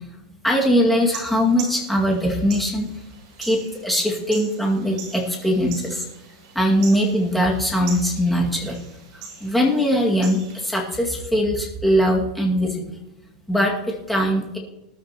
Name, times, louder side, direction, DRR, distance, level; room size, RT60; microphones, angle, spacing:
voice 1, 0.4-2.9 3.4-6.1 6.5-8.8 9.4-13.0 13.5-14.6, equal, ahead, -2 dB, 2.1 m, -21 dB
sound 1, 0.9-11.0, right 5 dB, 50° right, 5.6 m, -41 dB
20.0 x 12.0 x 3.0 m, 0.96 s
supercardioid pair, 170°, 4 cm